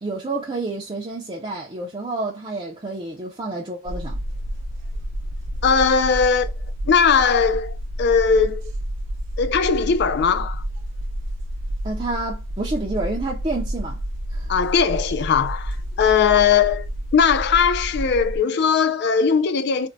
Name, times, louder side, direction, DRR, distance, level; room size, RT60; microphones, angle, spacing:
voice 1, 0.0-4.2 11.8-14.0 14.3-14.5, right 2 dB, 25° right, 0.5 m, -29 dB
sound 1, 3.8-18.4, equal, 70° right, 0.6 m, -30 dB
voice 2, 5.6-6.5 6.9-8.6 9.4-10.6 14.5-19.9, left 6 dB, 55° left, 0.4 m, -19 dB
4.3 x 2.1 x 2.5 m
head